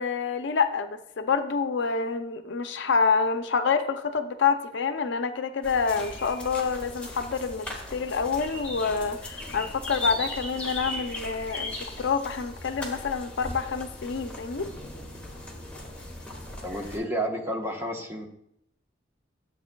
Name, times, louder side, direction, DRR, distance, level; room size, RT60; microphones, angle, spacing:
voice 1, 0.0-14.7, left 5 dB, 65° left, 9 dB, 0.5 m, -27 dB
sound 1, 5.6-17.0, left 1 dB, 5° left, 1.6 m, -38 dB
voice 2, 16.6-18.3, right 1 dB, 15° right, 1 dB, 1.0 m, -31 dB
12.0 x 7.7 x 2.3 m, 0.78 s
head